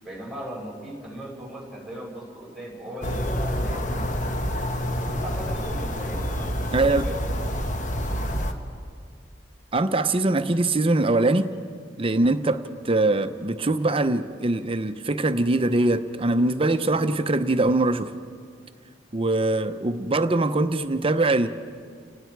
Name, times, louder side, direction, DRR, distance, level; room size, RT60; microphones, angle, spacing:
voice 1, 0.0-4.4 5.0-7.2, right 1 dB, ahead, 5.9 m, -38 dB
sound 1, 3.0-8.5, equal, 45° left, 1.4 m, -27 dB
voice 2, 6.7-7.1 9.7-11.5 12.0-18.1 19.1-21.5, right 2 dB, 30° right, 0.7 m, -22 dB
30.0 x 18.5 x 4.7 m
head